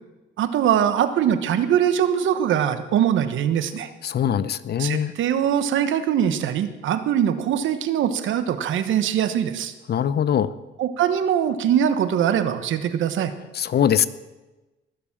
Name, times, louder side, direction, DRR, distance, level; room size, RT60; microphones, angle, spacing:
voice 1, 0.4-3.9 4.8-9.7 10.8-13.3, right 9 dB, 75° right, 11 dB, 1.1 m, -22 dB
voice 2, 4.0-5.1 9.9-10.5 13.5-14.1, left 9 dB, 55° left, 16 dB, 0.7 m, -22 dB
19.0 x 7.0 x 7.3 m, 1.1 s
cardioid pair, 80°, 20 cm